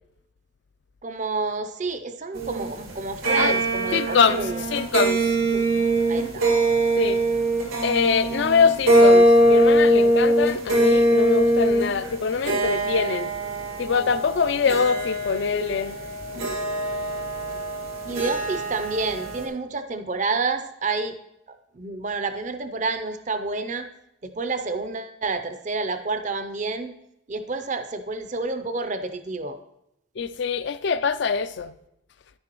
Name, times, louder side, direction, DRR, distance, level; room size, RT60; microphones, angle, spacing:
voice 1, 1.0-4.6 5.5-6.4 18.0-21.2 21.5-23.9 24.2-26.9 27.3-29.6, right 3 dB, 35° right, 0.5 m, -29 dB
sound 1, 2.3-19.4, right 1 dB, 90° right, 2.1 m, -22 dB
voice 2, 3.9-5.4 7.0-7.2 7.8-13.3 13.8-16.0 30.2-31.7, left 5 dB, 55° left, 0.4 m, -24 dB
10.0 x 9.7 x 3.0 m
head